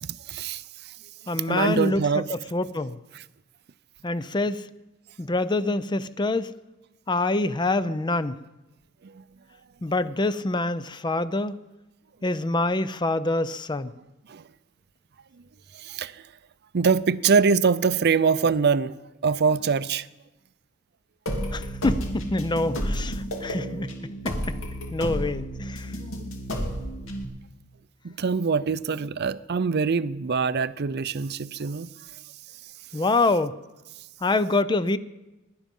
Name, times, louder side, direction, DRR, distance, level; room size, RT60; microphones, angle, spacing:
voice 1, 0.0-1.0 1.3-2.3 3.1-3.2 9.0-9.2 14.3-14.5 15.7-16.3 16.7-20.1 26.1-26.2 28.0-32.2, right 5 dB, 55° right, 0.5 m, -24 dB
voice 2, 1.3-3.0 4.0-4.7 5.2-6.5 7.1-8.4 9.8-11.5 12.2-13.9 21.5-23.9 24.2-24.6 24.9-25.9 32.9-33.6 34.2-35.0, left 2 dB, 20° left, 0.5 m, -26 dB
sound 1, 21.3-27.2, equal, 70° left, 2.7 m, -31 dB
22.5 x 11.5 x 5.4 m
head